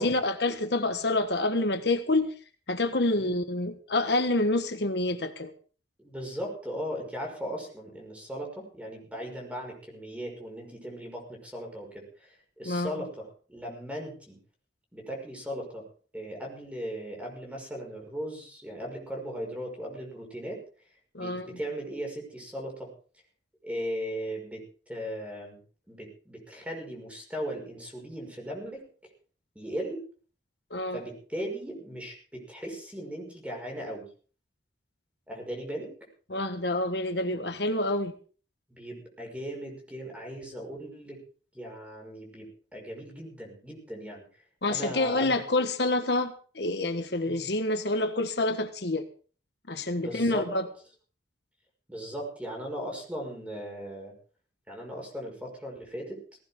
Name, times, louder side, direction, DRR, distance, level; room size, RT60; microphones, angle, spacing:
voice 1, 0.0-2.4 2.7-5.5 12.6-12.9 21.1-21.6 30.7-31.0 36.3-38.1 44.6-49.1 49.7-50.7, left 2 dB, 60° left, 7 dB, 1.4 m, -27 dB
voice 2, 6.0-14.4 14.9-15.8 16.1-20.6 21.2-22.9 23.6-24.6 24.9-25.6 25.9-28.9 29.6-30.1 30.9-34.0 35.3-35.9 38.7-41.2 41.5-44.2 44.7-45.4 47.2-47.5 50.0-50.5 51.9-54.1 54.7-56.2, equal, 5° right, 1 dB, 5.7 m, -38 dB
18.0 x 17.5 x 3.8 m, 0.40 s
head